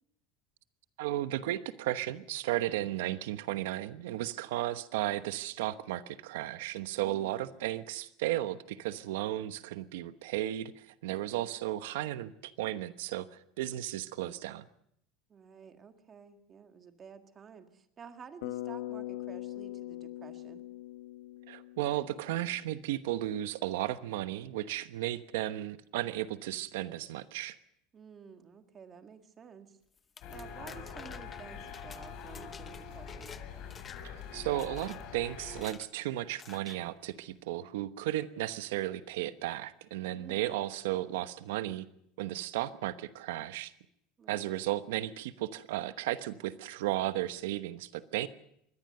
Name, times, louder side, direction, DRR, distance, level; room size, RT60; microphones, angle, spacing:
voice 1, 1.0-14.6 21.5-27.6 34.0-41.9 42.2-43.7 44.3-48.3, right 14 dB, 90° right, 12 dB, 1.1 m, -34 dB
voice 2, 7.0-7.6 11.3-11.5 15.3-20.7 27.9-29.8 30.3-33.4 40.1-40.6 44.2-44.6, right 6 dB, 25° right, 7 dB, 1.8 m, -52 dB
Bass guitar, 18.4-22.5, left 15 dB, 85° left, 1.1 m, -42 dB
sound 1, 30.0-33.4 33.7-34.2 34.6-35.0 35.5-35.9 36.4-36.8, left 6 dB, 20° left, 0.9 m, -51 dB
sound 2, 30.2-35.6, left 6 dB, 45° left, 5.3 m, -44 dB
23.0 x 17.5 x 6.7 m, 0.73 s
supercardioid pair, 150°, 0 cm